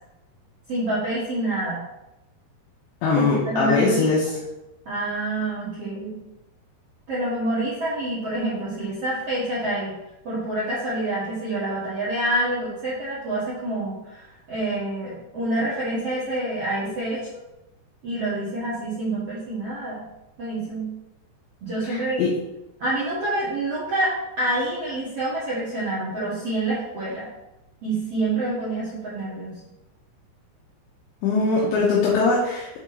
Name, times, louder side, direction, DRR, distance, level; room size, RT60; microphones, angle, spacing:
voice 1, 0.7-1.8 3.1-4.1 4.8-6.2 7.1-9.9 10.2-17.3 18.0-20.1 20.4-20.9 21.6-22.2 22.8-27.3 27.8-29.5, right 1 dB, 70° right, -9 dB, 1.4 m, -27 dB
voice 2, 3.0-4.2 21.9-22.3 31.2-32.7, left 4 dB, 80° left, -5 dB, 3.1 m, -21 dB
7.4 x 4.3 x 4.0 m, 0.96 s
omnidirectional pair, 5.1 m